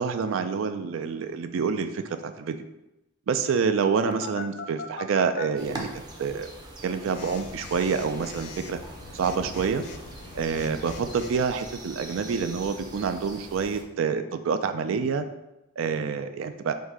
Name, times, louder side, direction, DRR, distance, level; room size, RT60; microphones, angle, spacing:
voice 1, 0.0-2.6 3.3-6.5 6.8-8.8 9.1-9.8 10.3-15.2 15.8-16.7, right 5 dB, 80° right, 9 dB, 0.4 m, -27 dB
Telephone, 4.1-5.4 7.1-11.5, left 5 dB, 60° left, 0.4 m, -41 dB
next spring day in the polish forest - front, 5.6-13.8, right 2 dB, 20° right, 0.5 m, -43 dB
3.9 x 2.7 x 4.6 m, 0.95 s
head